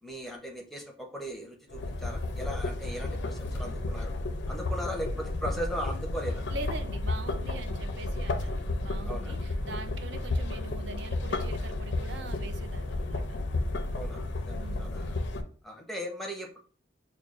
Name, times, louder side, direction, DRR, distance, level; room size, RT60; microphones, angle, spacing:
voice 1, 0.0-4.1 4.5-6.4 9.1-9.3 13.9-15.2 15.6-16.6, equal, ahead, 0.6 m, -38 dB
sound 1, 1.7-15.4, left 2 dB, 80° left, 0.5 m, -32 dB
voice 2, 6.5-13.4 14.5-14.9, right 3 dB, 70° right, 0.5 m, -43 dB
6.0 x 2.3 x 2.4 m
head